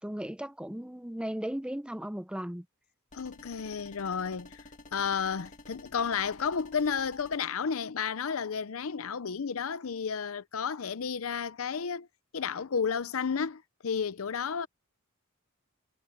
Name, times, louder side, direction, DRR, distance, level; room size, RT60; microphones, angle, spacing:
voice 1, 0.0-2.6, equal, 5° right, 0.6 m, -36 dB
voice 2, 3.1-4.6 4.9-12.1 12.3-14.7, left 6 dB, 70° left, 0.6 m, -32 dB
sound 1, 3.1-7.4, left 2 dB, 35° left, 2.3 m, -51 dB
head